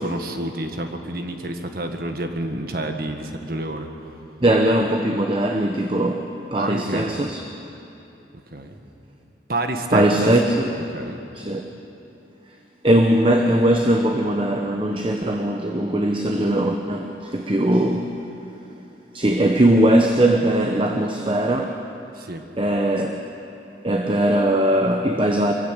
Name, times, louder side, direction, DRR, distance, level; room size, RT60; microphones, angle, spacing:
voice 1, 0.0-3.9 6.5-7.1 8.5-8.8 9.5-10.3 10.9-11.2 22.2-22.4, right 1 dB, 50° right, 5 dB, 1.7 m, -28 dB
voice 2, 4.4-7.4 9.9-10.7 11.3-11.7 12.8-18.2 19.1-21.8 22.6-23.2 23.8-25.5, right 1 dB, 30° right, 3 dB, 0.9 m, -20 dB
24.0 x 15.0 x 8.3 m, 2.9 s
head